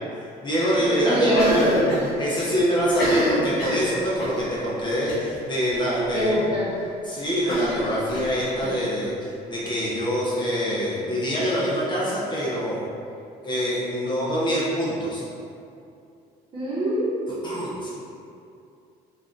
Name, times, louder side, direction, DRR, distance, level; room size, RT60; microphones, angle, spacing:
voice 1, 0.1-1.7 2.2-6.4 7.0-12.9 13.4-15.2 17.4-17.9, equal, 25° left, -7 dB, 0.6 m, -25 dB
voice 2, 1.0-2.0 6.1-6.7 16.5-17.1, equal, 35° right, -8 dB, 0.9 m, -23 dB
Cough, 1.3-2.1 2.4-2.5 2.9-4.4 5.1-5.4 5.7-5.8 6.1-6.2 7.5-8.7, equal, 85° left, 0.9 m, -28 dB
3.1 x 2.4 x 2.6 m, 2.5 s
cardioid pair, 110°, 17 cm